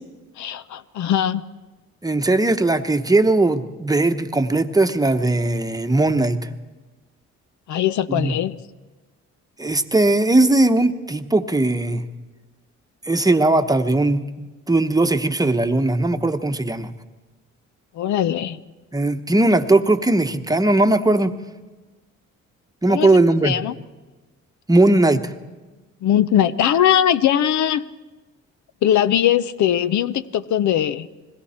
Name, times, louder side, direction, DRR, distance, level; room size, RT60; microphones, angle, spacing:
voice 1, 0.4-1.4 7.7-8.6 17.9-18.6 22.9-23.2 23.4-23.7 26.0-27.8 28.8-31.1, left 10 dB, 70° left, 0.7 m, -20 dB
voice 2, 2.0-6.5 8.1-8.3 9.6-12.0 13.0-16.9 18.9-21.4 22.8-23.5 24.7-25.3, right 2 dB, 10° right, 1.0 m, -18 dB
30.0 x 21.0 x 4.4 m
cardioid pair, 90°, 30 cm